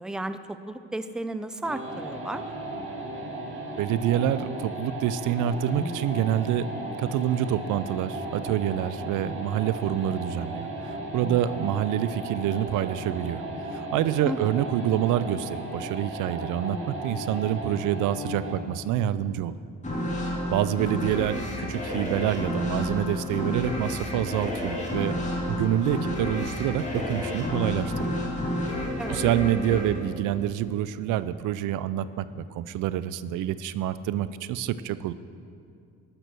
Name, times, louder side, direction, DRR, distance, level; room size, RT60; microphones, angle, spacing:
voice 1, 0.0-2.4 14.2-14.6 29.0-29.2, right 1 dB, ahead, 11 dB, 0.5 m, -34 dB
sound 1, 1.6-18.7, right 1 dB, 40° right, 2.0 m, -35 dB
voice 2, 3.8-6.7 7.0-13.4 13.7-19.5 20.5-25.2 25.5-28.1 29.1-35.1, right 11 dB, 85° right, 15 dB, 0.5 m, -27 dB
sound 2, 19.8-31.0, left 1 dB, 25° left, 2.3 m, -30 dB
12.5 x 6.0 x 6.8 m, 2.4 s
cardioid pair, 90°, 30 cm